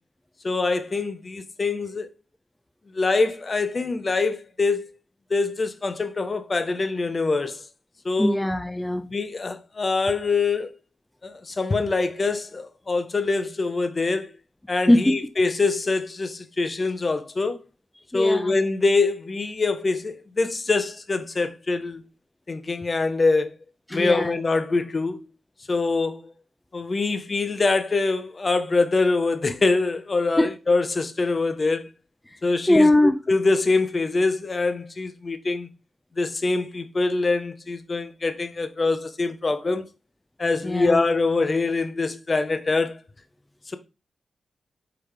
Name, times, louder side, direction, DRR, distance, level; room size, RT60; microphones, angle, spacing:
voice 1, 0.4-2.1 2.9-4.8 5.3-7.6 8.0-8.4 9.1-10.7 11.2-14.3 14.7-17.6 18.1-22.0 22.5-23.5 23.9-25.2 25.7-26.3 26.7-31.9 32.4-35.7 36.2-39.8 40.4-43.0, left 3 dB, 40° left, 0.7 m, -24 dB
voice 2, 8.2-9.1 14.9-15.3 18.1-18.6 23.9-24.4 30.4-30.6 32.3-32.4 32.7-33.2 40.6-41.0, left 1 dB, 10° left, 0.4 m, -21 dB
4.8 x 3.5 x 3.2 m
cardioid pair, 65°, 0 cm